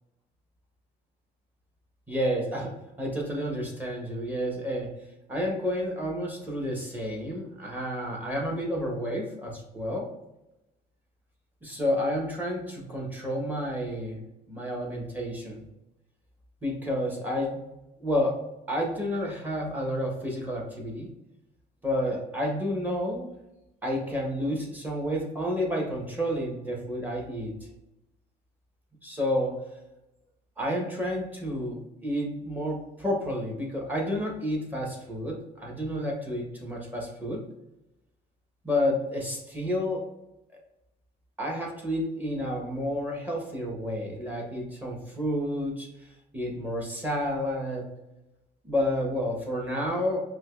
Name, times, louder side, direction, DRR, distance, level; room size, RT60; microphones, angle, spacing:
voice 1, 2.1-4.9 5.3-10.1 11.6-14.2 14.5-15.7 16.6-17.6 18.0-21.1 21.8-23.3 23.8-27.5 29.0-29.6 30.6-37.4 38.6-40.1 41.4-46.1 46.3-47.9 48.6-50.2, equal, 10° right, -1 dB, 1.1 m, -30 dB
5.1 x 2.2 x 2.4 m, 0.92 s
cardioid pair, 110°, 17 cm